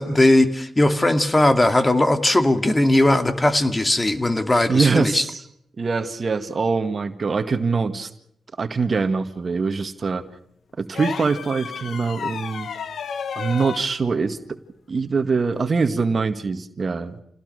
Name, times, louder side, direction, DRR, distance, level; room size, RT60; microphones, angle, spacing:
voice 1, 0.0-5.2, left 1 dB, 25° left, 8 dB, 2.4 m, -18 dB
voice 2, 4.7-5.4 5.8-8.1 8.6-10.2 10.8-12.7 13.4-14.6 14.9-17.2, right 4 dB, 50° right, 9 dB, 1.9 m, -23 dB
sound 1, 10.9-13.9 15.6-15.7, left 6 dB, 70° left, 1.2 m, -32 dB
28.5 x 17.5 x 6.7 m, 0.73 s
supercardioid pair, 45°, 0 cm